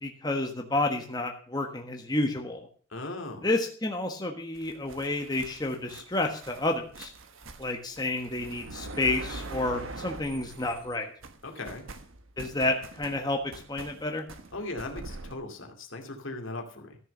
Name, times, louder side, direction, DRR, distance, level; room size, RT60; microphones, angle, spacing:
voice 1, 0.0-2.6 3.4-7.1 7.6-11.1 12.4-14.3, left 2 dB, 20° left, 2 dB, 1.4 m, -30 dB
voice 2, 2.9-3.5 11.4-11.8 14.5-17.0, left 2 dB, 70° left, 3 dB, 2.4 m, -38 dB
sound 1, 4.6-11.0 11.2-15.3, right 2 dB, 75° right, 1.3 m, -44 dB
14.0 x 6.7 x 6.7 m, 0.43 s
head